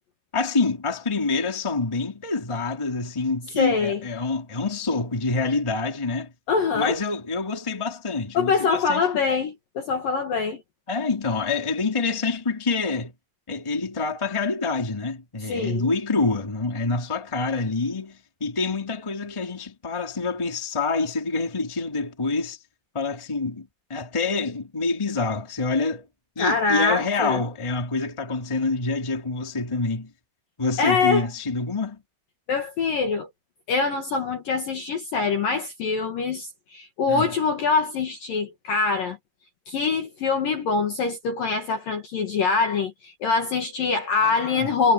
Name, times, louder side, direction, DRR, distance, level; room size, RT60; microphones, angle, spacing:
voice 1, 0.3-6.3 6.7-9.1 10.9-13.1 13.5-22.6 22.9-26.1 26.3-30.1 30.6-32.0 37.1-37.3 44.2-44.7, left 3 dB, 10° left, 1.9 m, -26 dB
voice 2, 3.6-4.0 6.5-7.0 8.3-10.6 15.5-15.9 26.4-27.4 30.8-31.3 32.5-33.3 33.7-39.2 39.7-44.9, left 4 dB, 60° left, 2.6 m, -24 dB
omnidirectional pair, 5.9 m